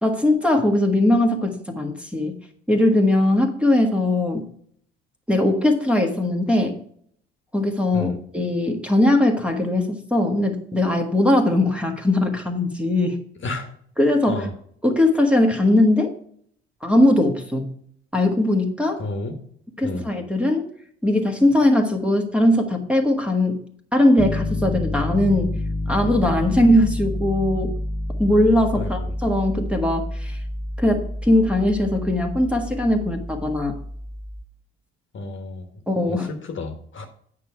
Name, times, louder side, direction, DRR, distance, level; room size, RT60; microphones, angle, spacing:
voice 1, 0.0-2.3 2.7-4.4 5.3-6.8 7.5-13.2 14.0-14.5 14.8-16.1 16.8-17.7 18.1-19.0 19.8-20.7 21.0-23.6 23.9-25.5 25.9-27.7 28.2-30.4 30.8-33.8 35.9-36.3, left 1 dB, 5° right, 3 dB, 1.5 m, -20 dB
voice 2, 19.0-19.4 19.8-20.1 28.8-29.1 35.1-35.7 36.1-37.1, left 2 dB, 35° left, 5 dB, 1.3 m, -31 dB
Piano, 24.2-34.4, left 1 dB, 15° left, 0.4 m, -29 dB
9.0 x 4.8 x 5.7 m, 0.63 s
hypercardioid pair, 55°, 32 cm